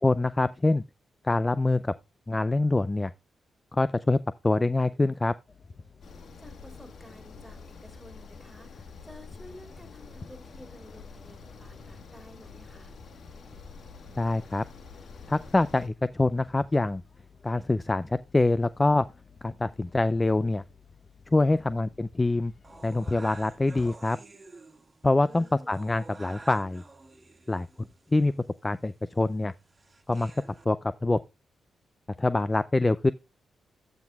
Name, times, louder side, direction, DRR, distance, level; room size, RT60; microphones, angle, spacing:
voice 1, 0.0-0.8 1.2-1.9 2.3-3.1 3.7-4.2 4.4-5.3 14.2-14.6 15.3-17.0 17.4-19.1 19.4-20.6 21.3-22.5 22.8-24.2 25.0-26.8 27.5-27.7 28.1-28.3 28.6-29.5 30.1-30.3 30.7-31.2 32.2-33.1, left 2 dB, 25° left, 0.4 m, -25 dB
sound 1, 5.5-24.0, left 4 dB, 45° left, 0.9 m, -51 dB
sound 2, 6.0-15.9, left 4 dB, 70° left, 1.4 m, -47 dB
voice 2, 6.1-12.9 21.4-21.7 25.2-25.7, left 1 dB, ahead, 3.1 m, -52 dB
sound 3, 22.6-30.7, right 3 dB, 35° right, 1.6 m, -50 dB
13.5 x 6.0 x 2.3 m
supercardioid pair, 55°, 0 cm